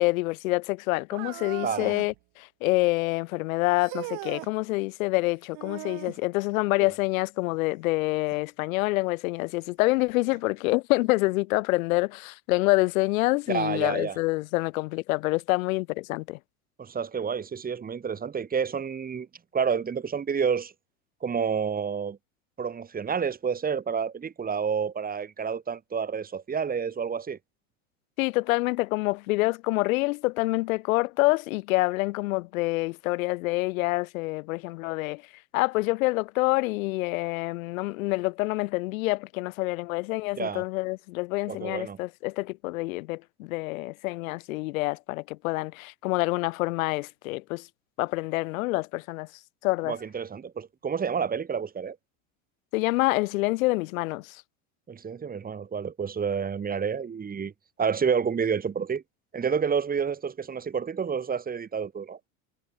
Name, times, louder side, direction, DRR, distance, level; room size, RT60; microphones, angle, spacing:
voice 1, 0.0-16.4 28.2-35.2 35.5-47.7 48.0-49.3 49.6-49.9 52.7-54.4, left 22 dB, 85° left, 0.5 m, -27 dB
sound 1, 1.1-2.2 3.8-4.5 5.5-6.2 8.3-8.4 9.3-9.4 10.3-10.4, right 29 dB, 60° right, 4.3 m, -38 dB
voice 2, 13.5-14.2 16.8-19.3 19.5-20.7 21.2-22.2 22.6-27.4 40.3-40.6 41.5-42.0 49.8-52.0 54.9-57.5 57.8-59.0 59.3-62.2, right 6 dB, 20° right, 1.9 m, -29 dB
supercardioid pair, 105°, 40 cm